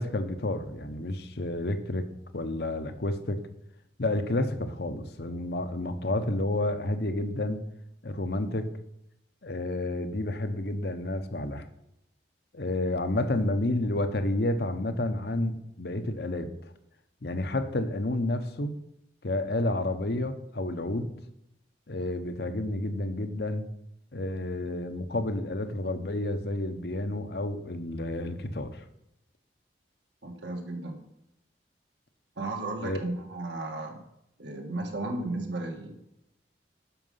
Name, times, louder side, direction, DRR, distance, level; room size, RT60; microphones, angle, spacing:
voice 1, 0.0-2.1 2.3-3.4 4.0-7.6 8.0-8.7 9.4-11.7 12.5-16.5 17.2-18.7 19.2-21.1 21.9-23.7 24.1-28.8 32.8-33.0, left 1 dB, 60° left, 8 dB, 0.9 m, -30 dB
voice 2, 30.2-31.0 32.4-34.0 34.4-36.0, right 2 dB, 75° right, 2 dB, 2.0 m, -34 dB
10.5 x 6.6 x 5.7 m, 0.84 s
head